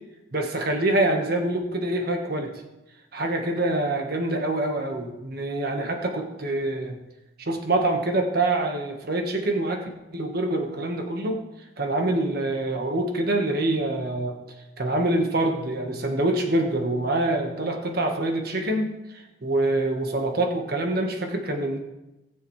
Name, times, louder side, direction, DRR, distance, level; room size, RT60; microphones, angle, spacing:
voice 1, 0.3-2.5 3.1-6.9 7.4-9.8 10.1-11.4 11.8-14.4 14.8-21.8, right 2 dB, 55° right, 3 dB, 1.4 m, -25 dB
19.0 x 6.9 x 3.2 m, 1.0 s
head